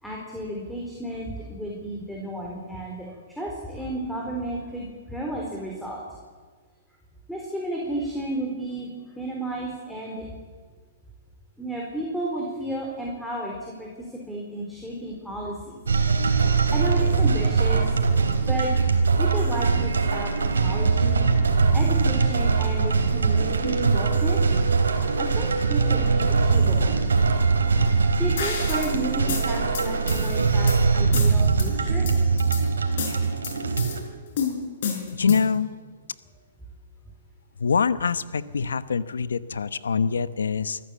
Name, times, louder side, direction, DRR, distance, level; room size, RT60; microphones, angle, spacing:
voice 1, 0.0-6.0 7.3-8.9 9.2-10.3 11.6-15.8 16.7-18.0 18.5-18.7 19.2-21.2 21.7-24.6 25.2-26.9 28.2-32.1, right 1 dB, ahead, -3 dB, 4.4 m, -32 dB
sound 1, 15.9-34.0, right 4 dB, 90° right, 3.4 m, -22 dB
sound 2, 28.4-28.9 29.3-30.8 31.1-31.7 32.1-32.6 33.0-34.0 34.4-35.6, left 6 dB, 60° left, 5.6 m, -31 dB
voice 2, 35.1-35.7 37.6-40.8, left 6 dB, 85° left, 15 dB, 1.0 m, -24 dB
24.0 x 14.0 x 8.5 m, 1.5 s
hypercardioid pair, 125°, 0 cm